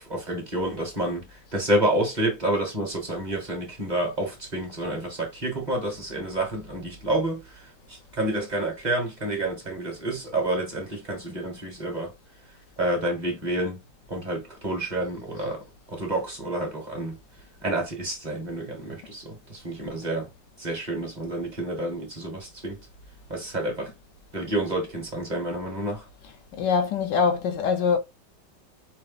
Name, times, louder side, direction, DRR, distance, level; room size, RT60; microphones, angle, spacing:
voice 1, 0.0-12.1 12.8-13.8 14.1-17.2 17.6-20.3 20.6-22.8 23.3-23.9 24.3-26.0, right 1 dB, 25° right, 1.3 m, -29 dB
voice 2, 26.5-28.0, left 6 dB, 85° left, 1.6 m, -23 dB
5.1 x 2.1 x 3.9 m
omnidirectional pair, 1.9 m